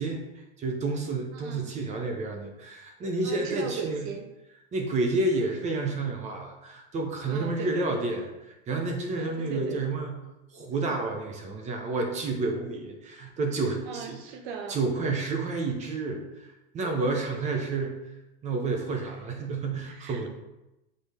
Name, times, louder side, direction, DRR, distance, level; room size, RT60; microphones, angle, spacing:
voice 1, 0.0-4.0 4.7-8.2 8.7-10.2 10.5-14.2 14.7-16.5 16.7-18.0 18.4-20.3, right 3 dB, 20° right, 3 dB, 0.9 m, -30 dB
voice 2, 1.3-1.7 3.2-4.3 7.3-8.1 9.2-9.8 13.8-14.8 19.9-20.3, right 6 dB, 50° right, 6 dB, 1.0 m, -38 dB
7.6 x 3.9 x 3.4 m, 0.96 s
hypercardioid pair, 135°, 33 cm